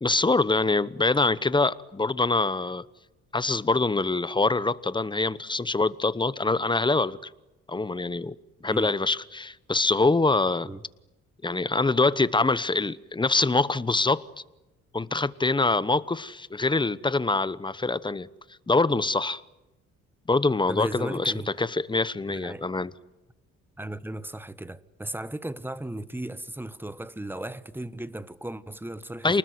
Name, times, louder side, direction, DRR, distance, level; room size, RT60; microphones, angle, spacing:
voice 1, 0.0-2.8 3.3-7.2 7.7-8.3 8.6-10.7 11.4-14.2 14.9-18.3 18.7-19.4 20.3-22.9 29.2-29.4, left 3 dB, 15° left, 1.0 m, -24 dB
voice 2, 20.7-21.5 22.3-22.6 23.8-29.4, right 1 dB, 5° right, 1.2 m, -36 dB
29.0 x 20.0 x 9.5 m
cardioid pair, 90°, 30 cm